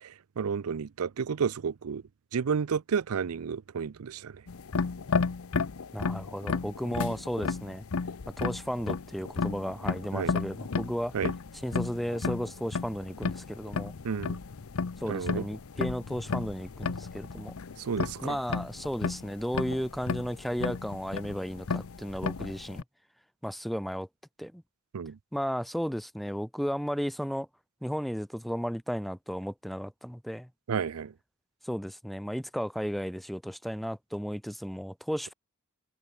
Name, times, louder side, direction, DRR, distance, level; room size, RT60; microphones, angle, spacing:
voice 1, 0.0-2.0 2.3-4.4 10.1-10.3 11.1-11.3 14.0-14.4 15.1-15.4 17.8-18.4 24.9-25.2 30.7-31.1, right 6 dB, 90° right, 0.5 m, -31 dB
sound 1, 4.5-22.8, left 4 dB, 75° left, 0.7 m, -33 dB
voice 2, 5.9-7.8 8.4-11.2 11.5-13.9 15.0-17.5 18.2-22.8 23.4-24.1 24.4-24.6 25.3-27.5 27.8-30.5 31.6-35.3, equal, ahead, 0.9 m, -34 dB
head